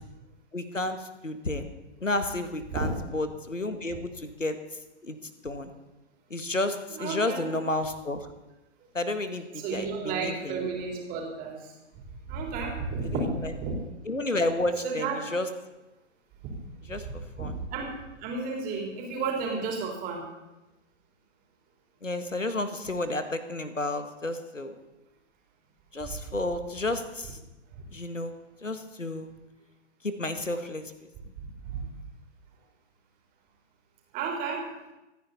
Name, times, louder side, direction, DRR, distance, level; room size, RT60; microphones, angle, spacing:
voice 1, 0.5-1.7 2.0-4.6 5.0-5.2 5.4-5.7 6.3-8.3 8.9-10.7 13.0-15.5 16.9-17.6 22.0-24.8 25.9-27.4 27.9-28.3 28.6-29.3 30.0-30.9, left 2 dB, 90° left, 9 dB, 1.6 m, -31 dB
voice 2, 6.9-7.5 9.6-11.7 12.3-13.7 14.8-15.2 16.8-17.9 18.2-20.2 31.4-31.8 34.1-34.6, right 4 dB, 25° right, 0 dB, 3.7 m, -32 dB
25.5 x 9.6 x 4.2 m, 1.0 s
figure-of-eight pair, 120°, 37 cm